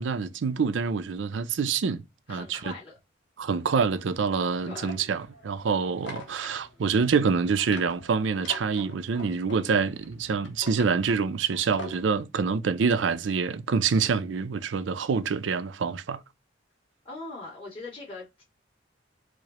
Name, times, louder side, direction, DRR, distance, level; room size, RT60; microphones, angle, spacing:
voice 1, 0.0-2.0 2.3-2.7 3.4-16.2, right 5 dB, 80° right, 0.4 m, -26 dB
voice 2, 2.3-2.9 4.6-4.9 17.0-18.4, left 2 dB, 30° left, 2.0 m, -41 dB
sound 1, 4.5-12.1, left 2 dB, 75° left, 1.0 m, -44 dB
4.8 x 2.0 x 2.9 m
head